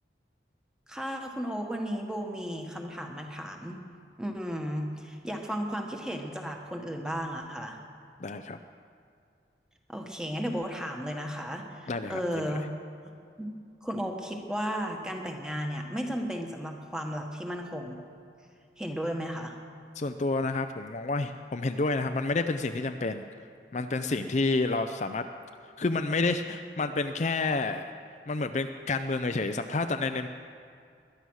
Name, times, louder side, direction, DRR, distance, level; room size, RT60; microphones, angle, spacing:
voice 1, 0.9-3.8 4.2-7.8 9.9-12.7 13.4-13.5 13.8-18.0 18.8-19.6, equal, 5° right, 2 dB, 1.3 m, -34 dB
voice 2, 8.2-8.6 11.9-12.5 20.0-23.3 23.7-25.2 25.6-27.9 28.3-30.3, left 3 dB, 40° left, 7 dB, 0.5 m, -29 dB
20.5 x 11.0 x 6.4 m, 2.3 s
head